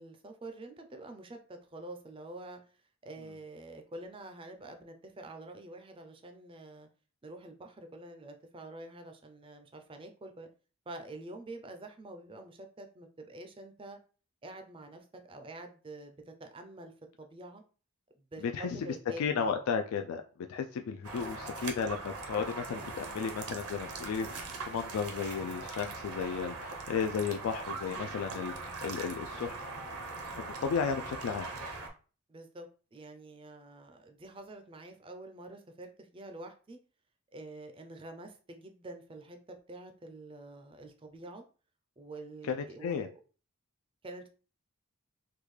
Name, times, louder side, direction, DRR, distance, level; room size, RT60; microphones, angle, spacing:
voice 1, 0.0-2.6 3.0-6.9 7.2-10.5 10.9-14.0 14.4-17.6 18.1-19.6 32.3-36.8 37.3-41.4 42.0-43.1 44.0-44.3, right 2 dB, 25° right, 6 dB, 0.4 m, -47 dB
voice 2, 19.2-20.2 20.5-29.5 30.4-31.5 42.4-43.1, left 6 dB, 75° left, 5 dB, 0.3 m, -34 dB
sound 1, 21.0-31.9, right 3 dB, 80° right, 0.7 m, -41 dB
3.5 x 2.3 x 3.2 m, 0.38 s
head